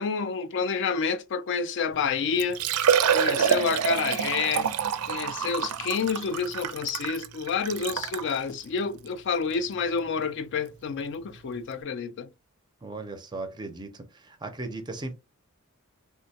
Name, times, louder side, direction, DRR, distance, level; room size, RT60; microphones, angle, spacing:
voice 1, 0.0-2.6 3.1-4.7 5.1-12.3, left 5 dB, 55° left, 0.4 m, -29 dB
Liquid, 1.9-2.0 2.4-8.3 9.0-9.1 9.5-9.6 11.3-11.4 11.5-11.6, right 8 dB, 75° right, 0.4 m, -26 dB
voice 2, 12.8-15.1, right 2 dB, 20° right, 0.5 m, -37 dB
3.5 x 2.2 x 2.7 m
head